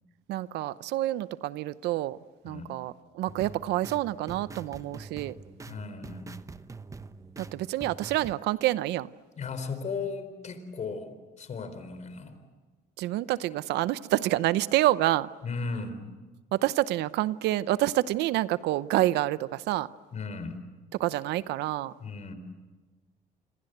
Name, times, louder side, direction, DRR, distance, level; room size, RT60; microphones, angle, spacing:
voice 1, 0.3-2.2 2.4-5.3 7.4-9.1 13.0-15.3 16.5-19.9 21.0-21.9, right 15 dB, 85° right, 0.8 m, -28 dB
sound 1, 3.3-8.4, right 4 dB, 20° right, 1.0 m, -45 dB
voice 2, 5.7-6.3 9.4-12.4 15.4-16.2 20.1-20.7 22.0-22.3, left 4 dB, 45° left, 4.3 m, -36 dB
28.5 x 26.0 x 8.0 m
cardioid pair, 110°, 17 cm